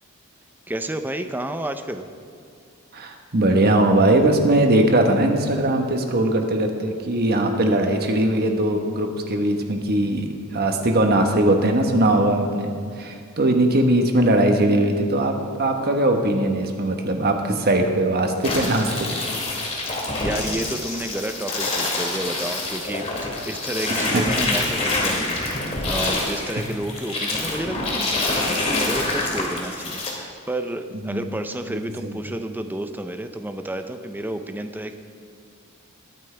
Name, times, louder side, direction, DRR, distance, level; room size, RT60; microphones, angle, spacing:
voice 1, 0.7-2.1 20.2-25.4 25.8-35.0, right 1 dB, 10° right, 8 dB, 0.5 m, -31 dB
voice 2, 2.9-12.7 13.0-18.9 23.9-24.5 30.9-31.2 31.7-32.2, right 1 dB, 45° right, 4 dB, 1.2 m, -20 dB
sound 1, 18.4-30.1, left 2 dB, 30° left, 2.2 m, -26 dB
21.0 x 8.9 x 3.4 m, 2.4 s
head